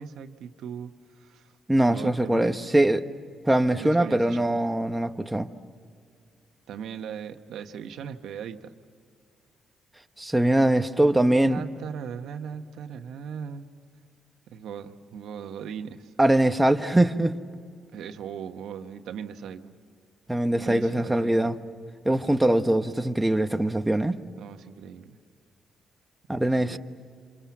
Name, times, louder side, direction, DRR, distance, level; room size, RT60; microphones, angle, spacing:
voice 1, 0.0-1.5 1.8-2.6 3.7-4.6 6.7-8.7 11.5-13.7 14.5-16.1 17.9-19.8 20.5-21.5 24.4-25.2 26.4-26.8, right 7 dB, 75° right, 1.3 m, -39 dB
voice 2, 1.7-3.0 3.4-5.5 10.2-11.6 16.2-17.3 20.3-21.6 22.0-24.2 26.3-26.8, right 1 dB, 10° right, 1.1 m, -22 dB
28.5 x 26.5 x 7.4 m
cardioid pair, 90°, 0 cm